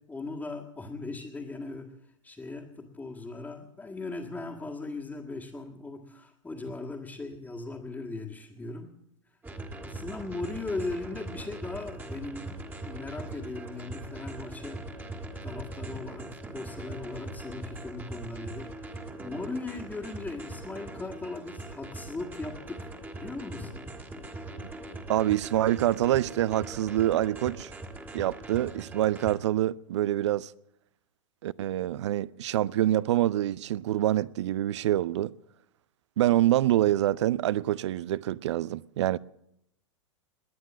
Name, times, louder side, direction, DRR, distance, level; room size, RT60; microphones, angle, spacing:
voice 1, 0.1-1.9 2.2-8.9 9.8-14.8 15.4-23.9, left 3 dB, 10° left, 1.8 m, -38 dB
sound 1, 9.4-29.3, right 2 dB, 10° right, 2.0 m, -41 dB
voice 2, 25.1-27.7 28.1-30.5 31.4-35.3 36.2-39.2, right 13 dB, 65° right, 0.5 m, -26 dB
20.5 x 9.5 x 7.3 m
figure-of-eight pair, 100°, 16 cm